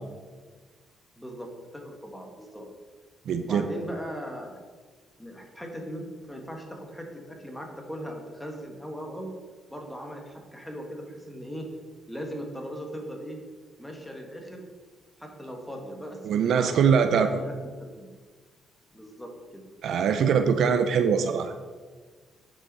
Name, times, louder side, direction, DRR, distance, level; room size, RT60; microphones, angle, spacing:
voice 1, 1.1-2.7 3.4-4.6 5.2-9.3 9.7-11.7 12.1-13.4 13.8-14.7 15.2-18.1 18.9-19.6, equal, 5° left, 2 dB, 1.6 m, -39 dB
voice 2, 3.3-3.7 16.2-17.3 19.8-21.5, right 7 dB, 70° right, 8 dB, 0.5 m, -22 dB
9.5 x 5.7 x 4.2 m, 1.4 s
cardioid pair, 90°, 0 cm